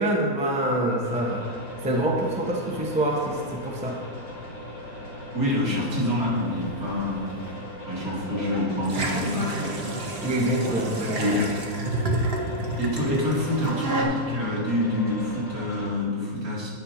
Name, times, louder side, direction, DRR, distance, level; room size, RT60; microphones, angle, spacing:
voice 1, 0.0-1.5 1.8-4.0 10.2-11.4 13.1-13.2, right 1 dB, 5° right, -1 dB, 0.7 m, -25 dB
sound 1, 1.0-15.9, left 1 dB, 50° left, 1.9 m, -39 dB
voice 2, 5.3-7.3 7.9-9.7 10.3-10.4 11.2-11.4 12.8-16.7, left 1 dB, 65° right, -6 dB, 2.6 m, -27 dB
sound 2, 6.3-7.5 7.9-11.5, left 1 dB, 20° left, 2.6 m, -38 dB
sound 3, 8.9-14.0, right 2 dB, 45° right, 1.0 m, -30 dB
10.0 x 4.4 x 5.7 m, 2.1 s
omnidirectional pair, 1.7 m